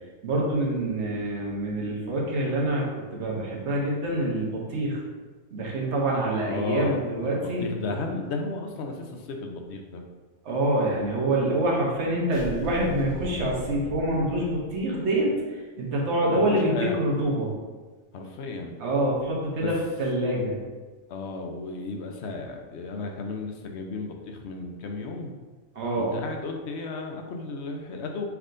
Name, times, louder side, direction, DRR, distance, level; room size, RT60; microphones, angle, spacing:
voice 1, 0.2-2.9 3.1-5.0 5.5-7.7 10.4-15.3 15.8-17.5 18.8-20.6 25.7-26.1, right 1 dB, 70° right, -2 dB, 1.3 m, -26 dB
voice 2, 6.5-7.0 7.2-10.0 16.2-17.0 18.1-18.8 19.6-19.7 21.1-25.4 26.0-28.2, left 3 dB, 70° left, 3 dB, 0.9 m, -34 dB
sound 1, 12.3-15.1, equal, 50° left, 1.1 m, -37 dB
5.8 x 3.5 x 2.5 m, 1.3 s
omnidirectional pair, 1.2 m